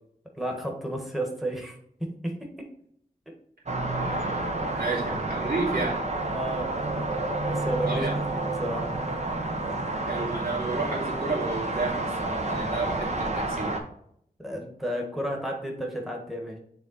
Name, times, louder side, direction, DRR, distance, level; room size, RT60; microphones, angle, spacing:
voice 1, 0.3-2.5 5.7-5.8 6.3-6.7 7.5-8.1 8.4-9.0 14.4-16.6, right 1 dB, ahead, 1 dB, 1.4 m, -32 dB
sound 1, 3.7-13.8, right 2 dB, 45° right, 1.0 m, -29 dB
voice 2, 4.0-6.0 7.8-8.2 10.0-13.8, right 3 dB, 75° right, -5 dB, 2.5 m, -32 dB
6.8 x 3.5 x 4.0 m, 0.70 s
cardioid pair, 45°, 16 cm